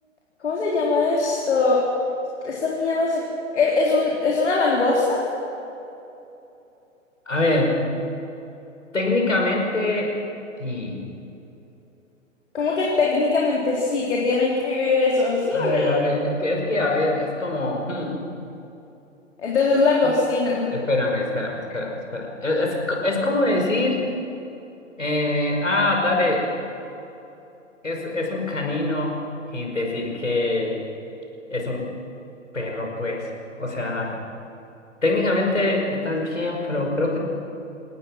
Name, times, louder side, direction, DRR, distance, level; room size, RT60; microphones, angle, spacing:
voice 1, 0.4-1.8 2.4-3.2 3.5-5.3 12.5-15.9 19.4-20.7, left 3 dB, 60° left, -3 dB, 3.9 m, -21 dB
voice 2, 7.3-7.8 8.9-10.2 10.6-11.0 15.5-18.2 20.7-24.0 25.0-26.5 27.8-30.8 31.5-31.8 32.5-33.3 33.6-34.2 35.0-37.2, left 2 dB, 75° left, 1 dB, 5.5 m, -24 dB
28.0 x 18.5 x 6.0 m, 2.9 s
figure-of-eight pair, 115°, 38 cm